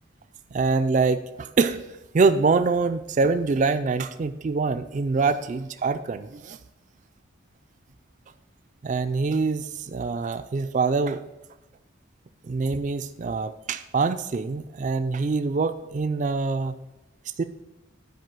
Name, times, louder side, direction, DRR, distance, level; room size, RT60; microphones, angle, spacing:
voice 1, 0.5-1.8 2.1-6.6 8.8-11.2 12.4-16.7 17.4-17.5, right 4 dB, 35° right, 10 dB, 0.3 m, -24 dB
9.5 x 4.6 x 6.1 m, 1.0 s
head